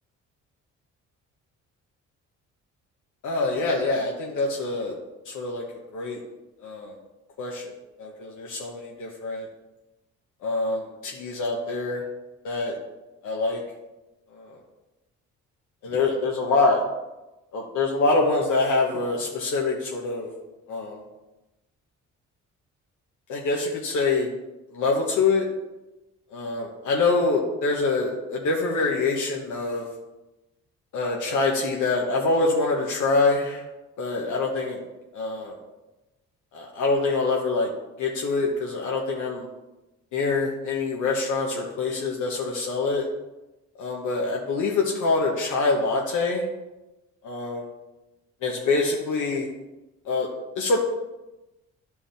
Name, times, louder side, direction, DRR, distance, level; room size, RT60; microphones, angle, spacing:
voice 1, 3.2-4.9 5.2-5.6 5.9-6.2 6.6-6.9 7.4-7.7 8.0-9.5 10.4-12.0 12.4-12.8 13.2-13.6 14.3-14.6 15.8-16.8 17.5-20.3 20.7-21.0 23.3-24.3 24.7-25.4 26.3-29.8 30.9-33.6 34.0-34.8 35.1-35.5 36.5-37.7 38.0-39.5 40.1-43.1 43.8-46.5 47.2-47.7 48.4-49.5 50.0-50.3 50.5-50.8, left 3 dB, 80° left, -2 dB, 1.3 m, -25 dB
11.5 x 5.2 x 3.5 m, 1.0 s
cardioid pair, 90°, 30 cm